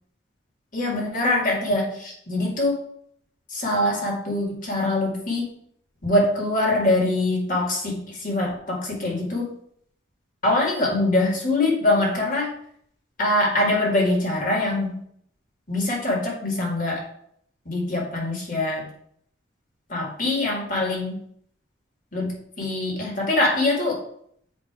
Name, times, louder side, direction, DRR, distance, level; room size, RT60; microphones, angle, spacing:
voice 1, 0.7-2.8 3.5-5.5 6.0-9.5 10.4-12.5 13.2-15.0 15.7-17.1 17.7-18.9 19.9-21.2 22.1-24.0, left 2 dB, 45° left, -1 dB, 1.9 m, -23 dB
7.7 x 3.0 x 4.7 m, 0.66 s
head